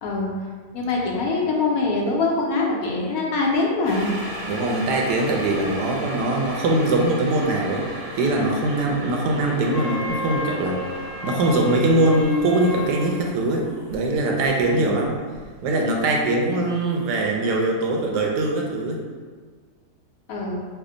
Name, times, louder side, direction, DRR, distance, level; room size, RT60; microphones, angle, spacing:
voice 1, 0.0-0.3 0.7-4.1 14.7-14.9 20.3-20.5, left 3 dB, 65° left, -2 dB, 0.9 m, -23 dB
sound 1, 3.8-15.9 16.3-16.4, equal, 50° right, 0.7 m, -36 dB
voice 2, 4.5-7.8 8.2-10.8 11.2-15.2 15.6-19.0, right 2 dB, 80° right, 0 dB, 1.2 m, -22 dB
Wind instrument woodwind instrument, 9.7-13.1, left 2 dB, 50° left, 0.5 m, -33 dB
3.4 x 2.1 x 3.7 m, 1.5 s
omnidirectional pair, 1.9 m